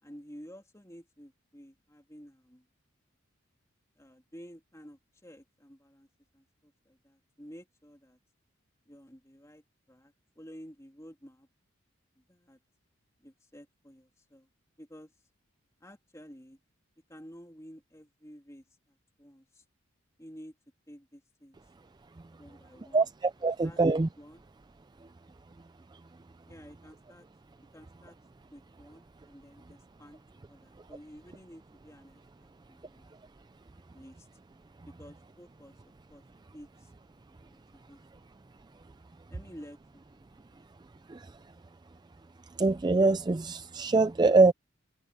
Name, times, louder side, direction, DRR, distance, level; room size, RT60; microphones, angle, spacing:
voice 1, 0.0-2.7 4.0-6.1 6.3-8.2 8.8-11.5 12.2-12.6 13.2-14.5 14.8-15.1 15.8-16.6 17.1-19.6 20.2-20.6 20.9-21.6 22.4-23.1 23.6-23.8 24.2-24.4 26.5-27.3 27.7-28.2 28.5-30.2 30.5-33.1 33.7-34.3 35.0-36.2 36.5-38.3 39.3-39.8 40.1-40.2 40.5-40.6, equal, 15° left, 3.0 m, -52 dB
voice 2, 22.9-24.1 41.1-41.3 42.6-44.5, right 3 dB, 20° right, 0.3 m, -24 dB
head